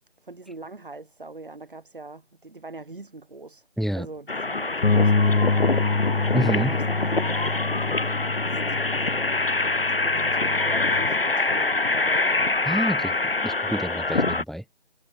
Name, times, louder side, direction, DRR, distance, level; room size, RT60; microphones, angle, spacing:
voice 1, 0.2-3.7 3.9-9.1 9.6-13.1 13.5-13.6, right 3 dB, 45° right, 7.0 m, -42 dB
sound 1, 4.3-14.4, left 3 dB, 50° left, 3.1 m, -25 dB
Bass guitar, 4.8-11.1, left 3 dB, 85° left, 1.6 m, -26 dB
voice 2, 6.3-6.7 12.6-13.1 13.4-14.6, equal, ahead, 0.4 m, -27 dB
figure-of-eight pair, 175°, 36 cm